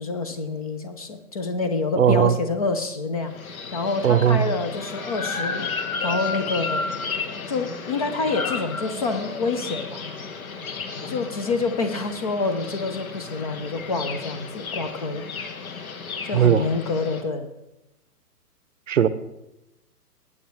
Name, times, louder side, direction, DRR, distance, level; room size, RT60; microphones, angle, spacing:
voice 1, 0.0-5.7 6.0-6.9 7.5-10.0 11.1-15.3 16.2-17.5, left 3 dB, 25° left, 9 dB, 0.6 m, -27 dB
voice 2, 2.0-2.3 4.0-4.5 16.3-16.6 18.9-19.1, right 9 dB, 55° right, 14 dB, 0.8 m, -18 dB
sound 1, 3.2-17.2, left 4 dB, 60° left, 1.4 m, -33 dB
19.5 x 8.5 x 3.2 m, 0.93 s
figure-of-eight pair, 130°, 47 cm